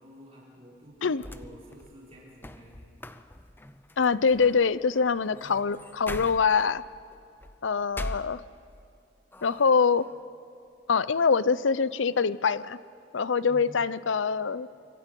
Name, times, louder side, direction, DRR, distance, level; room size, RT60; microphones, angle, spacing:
voice 1, 0.0-2.9 5.3-5.8 13.4-13.8, equal, 35° right, -6 dB, 5.5 m, -50 dB
sound 1, 0.9-8.9 9.3-10.1, left 1 dB, 10° left, 0.6 m, -43 dB
voice 2, 4.0-6.8 7.6-8.4 9.4-10.1 10.9-12.8 13.1-14.7, left 5 dB, 85° left, 17 dB, 0.6 m, -24 dB
25.5 x 24.0 x 5.4 m, 2.5 s
head